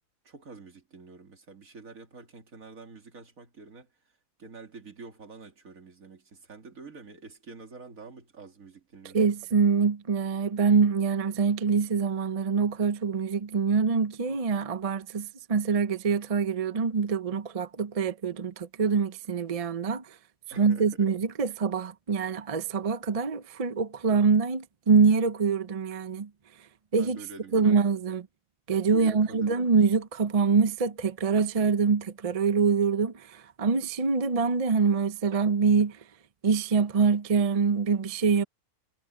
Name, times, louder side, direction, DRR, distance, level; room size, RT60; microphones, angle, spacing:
voice 1, 0.2-9.4 20.5-21.1 27.0-28.0 28.9-29.6, right 4 dB, 65° right, 2.8 m, -47 dB
voice 2, 9.1-20.0 20.6-26.3 26.9-27.2 27.5-28.2 28.7-36.0 36.4-38.4, right 5 dB, 35° right, 0.6 m, -25 dB
omnidirectional pair, 1.5 m